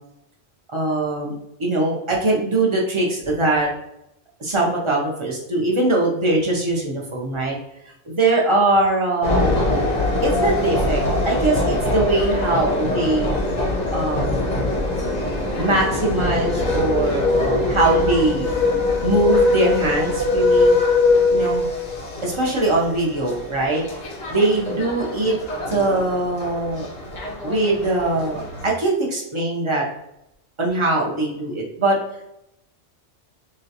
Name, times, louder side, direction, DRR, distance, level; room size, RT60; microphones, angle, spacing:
voice 1, 0.7-1.3 1.6-3.7 4.4-7.5 7.8-9.6 10.2-13.3 13.9-14.5 15.6-18.5 19.0-20.8 21.3-21.6 22.2-23.8 24.3-25.4 25.7-26.9 27.4-29.9 30.6-32.0, right 2 dB, 35° right, -2 dB, 0.5 m, -21 dB
sound 1, 9.2-28.7, left 2 dB, 40° left, 0.7 m, -22 dB
3.9 x 2.3 x 2.7 m, 0.82 s
omnidirectional pair, 1.3 m